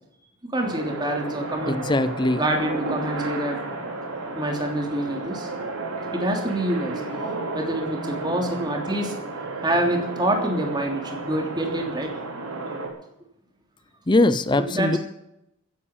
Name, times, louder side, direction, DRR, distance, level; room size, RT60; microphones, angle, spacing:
voice 1, 0.5-1.8 2.4-3.6 4.3-5.5 6.1-7.0 7.5-9.1 9.6-12.1 14.6-15.0, right 1 dB, 20° right, 2 dB, 3.1 m, -26 dB
sound 1, 0.6-12.9, right 2 dB, 80° right, 4.2 m, -32 dB
voice 2, 1.7-2.4 14.1-15.0, left 2 dB, 20° left, 13 dB, 0.6 m, -21 dB
15.5 x 10.5 x 7.1 m, 0.80 s
head